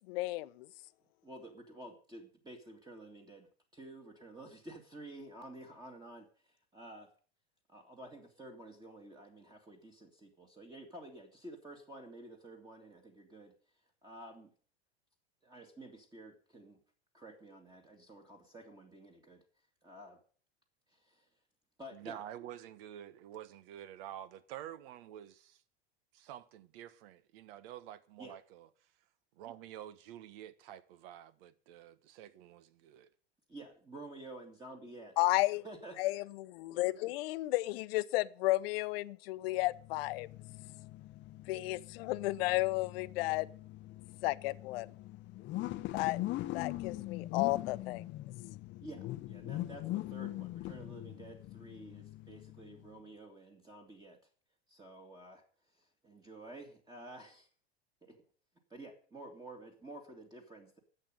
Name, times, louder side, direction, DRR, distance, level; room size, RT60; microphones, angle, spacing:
voice 1, 0.1-0.7 35.2-35.6 36.0-40.3 41.5-43.5 44.2-44.9 45.9-46.2 46.5-48.0, left 20 dB, 65° left, 0.8 m, -33 dB
voice 2, 1.2-3.5 3.7-7.1 7.7-13.5 14.0-14.5 15.4-16.8 17.1-19.4 19.8-20.2 20.9-21.3 21.8-22.2 28.2-28.4 33.5-35.2 35.6-35.9 48.8-54.2 54.7-55.4 55.7-57.5 58.0-58.2 58.7-60.8, right 1 dB, 15° right, 2.2 m, -51 dB
voice 3, 21.9-25.6 26.1-28.7 29.3-33.1, right 11 dB, 60° right, 1.4 m, -49 dB
sound 1, 39.6-52.9, left 16 dB, 35° left, 0.7 m, -42 dB
11.5 x 7.9 x 9.0 m
supercardioid pair, 115°, 32 cm